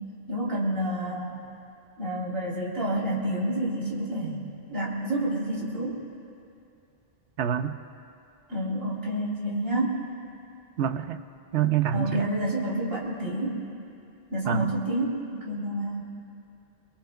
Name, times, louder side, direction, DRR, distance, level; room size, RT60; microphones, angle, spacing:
voice 1, 0.0-1.4 2.0-6.0 8.5-10.1 11.9-13.6 14.3-16.0, right 1 dB, 55° right, -6 dB, 3.9 m, -29 dB
voice 2, 7.4-7.7 10.8-11.2 11.5-12.3 14.5-14.7, right 9 dB, 80° right, 9 dB, 1.0 m, -26 dB
26.0 x 24.5 x 2.3 m, 2.6 s
omnidirectional pair, 1.2 m